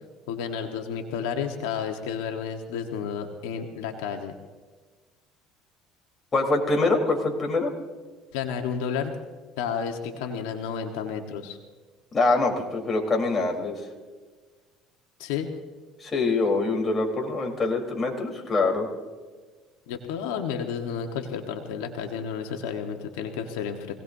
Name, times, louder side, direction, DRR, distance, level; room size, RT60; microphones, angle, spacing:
voice 1, 0.3-4.3 8.3-9.2 9.6-11.6 15.2-15.5 19.9-23.9, left 7 dB, 90° left, 4 dB, 1.4 m, -31 dB
voice 2, 6.3-7.7 12.1-13.9 16.0-18.9, left 3 dB, 25° left, 1 dB, 3.8 m, -24 dB
25.0 x 18.0 x 2.7 m, 1.4 s
supercardioid pair, 105°, 0 cm